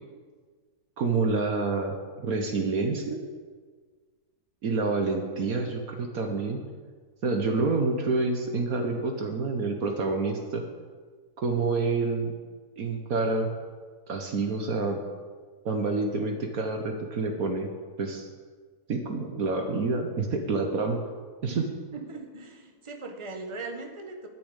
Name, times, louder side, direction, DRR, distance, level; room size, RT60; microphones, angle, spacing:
voice 1, 1.0-3.2 4.6-6.6 7.2-10.6 11.4-12.3 12.8-13.5 14.1-15.0 15.6-17.7 18.0-18.3 18.9-21.0 21.4-21.7, right 3 dB, 65° right, 4 dB, 1.5 m, -28 dB
voice 2, 21.9-24.3, right 3 dB, 20° right, 4 dB, 1.3 m, -39 dB
12.0 x 7.0 x 9.7 m, 1.5 s
omnidirectional pair, 1.7 m